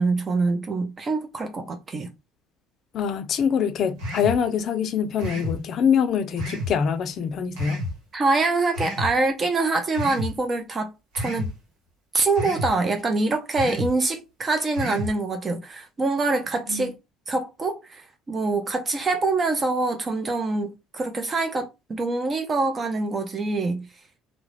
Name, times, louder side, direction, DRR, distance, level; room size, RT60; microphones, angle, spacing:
voice 1, 0.0-2.1 8.1-11.5 12.1-16.9 17.3-23.9, right 3 dB, 35° right, 0.5 m, -25 dB
voice 2, 2.9-7.8 16.7-16.9, left 7 dB, 55° left, 0.4 m, -24 dB
sound 1, 4.0-4.4 5.2-5.6 6.4-6.7 7.6-7.9 8.7-9.1 9.9-10.3 11.1-11.5 12.3-12.7 13.5-13.9 14.7-15.1, left 1 dB, 80° right, 1.0 m, -30 dB
2.3 x 2.0 x 3.2 m
supercardioid pair, 80°, 0 cm